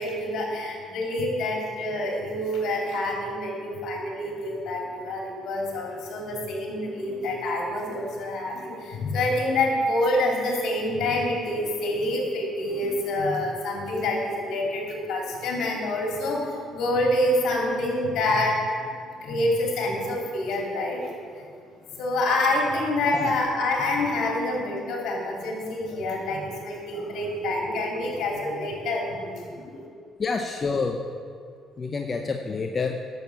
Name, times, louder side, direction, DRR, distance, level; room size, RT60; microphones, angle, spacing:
voice 1, 0.0-18.6 19.2-21.1 21.9-29.8, left 1 dB, 70° left, 0 dB, 3.0 m, -27 dB
voice 2, 30.2-31.0 31.8-33.0, left 4 dB, 35° left, 3 dB, 0.8 m, -28 dB
11.0 x 7.5 x 7.2 m, 2.2 s
cardioid pair, 80°, 0 cm